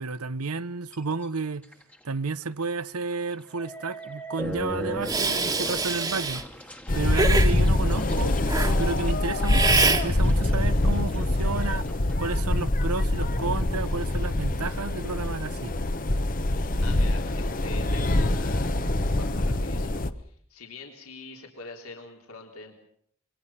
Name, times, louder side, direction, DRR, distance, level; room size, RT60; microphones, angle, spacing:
voice 1, 0.0-1.6 2.0-6.4 6.9-8.4 8.8-11.8 12.2-15.7, right 3 dB, 90° right, 0.9 m, -31 dB
sound 1, 0.9-1.2 1.6-2.0 2.4-2.5 3.3-12.4, equal, 5° left, 1.4 m, -40 dB
Hiss, 5.0-6.4 7.1-7.5 8.5-8.7 9.5-10.0, right 3 dB, 15° right, 1.5 m, -24 dB
sound 2, 6.9-20.1, left 1 dB, 40° left, 0.9 m, -24 dB
voice 2, 16.8-22.9, left 3 dB, 80° left, 3.6 m, -44 dB
26.5 x 22.5 x 5.7 m
head